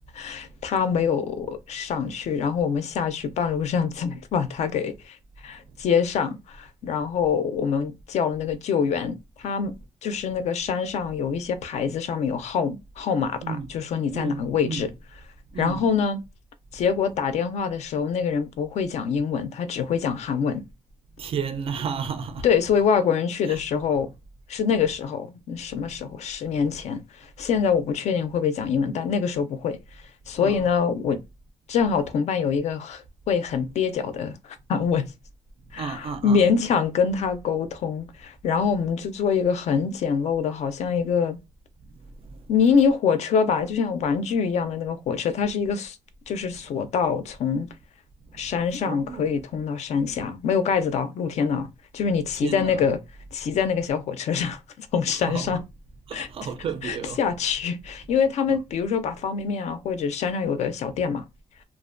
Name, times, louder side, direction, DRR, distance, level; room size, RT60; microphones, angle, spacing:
voice 1, 0.1-5.2 5.4-9.7 10.0-14.9 15.6-16.2 16.7-20.6 22.4-24.1 24.5-29.8 30.3-31.2 31.7-34.4 34.7-35.0 35.7-41.4 42.5-46.0 46.3-47.7 48.3-51.7 51.9-53.0 53.3-55.6 56.1-56.3 56.8-61.2, left 6 dB, 55° left, 0.4 m, -25 dB
voice 2, 14.1-14.9 15.5-15.8 21.2-22.5 23.5-23.6 30.4-30.6 35.8-36.5 48.8-49.3 52.4-52.8 55.1-55.6 56.1-57.2 58.5-58.6, right 6 dB, 45° right, 0.4 m, -32 dB
2.4 x 2.1 x 2.5 m
cardioid pair, 165°, 14 cm